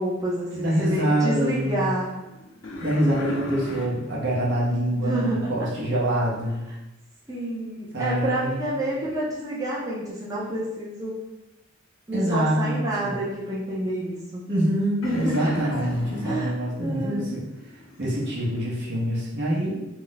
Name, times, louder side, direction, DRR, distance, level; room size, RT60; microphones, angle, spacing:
voice 1, 0.0-2.1 5.0-5.4 7.3-11.2 12.1-14.4 15.0-15.5 16.2-16.5 16.8-17.4, right 1 dB, 15° right, -7 dB, 0.5 m, -28 dB
voice 2, 0.5-1.9 2.8-6.6 7.9-8.6 12.1-13.1 14.5-17.4 18.0-19.8, right 1 dB, 60° right, -5 dB, 0.8 m, -25 dB
sound 1, 1.5-6.6 15.0-18.7, left 1 dB, 80° left, 0.5 m, -39 dB
2.3 x 2.0 x 3.9 m, 0.97 s
head